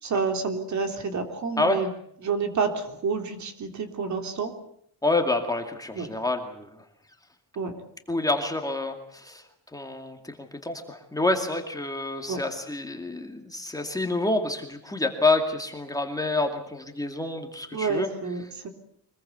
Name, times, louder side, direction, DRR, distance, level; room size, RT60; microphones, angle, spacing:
voice 1, 0.0-1.9 2.2-4.5 5.9-6.1 7.5-7.7 12.3-12.4 17.7-18.7, right 5 dB, 45° right, 6 dB, 3.4 m, -29 dB
voice 2, 5.0-6.7 8.1-9.4 9.7-18.1, left 2 dB, 10° left, 3 dB, 2.2 m, -28 dB
25.0 x 21.5 x 8.1 m, 0.68 s
cardioid pair, 175°, 40 cm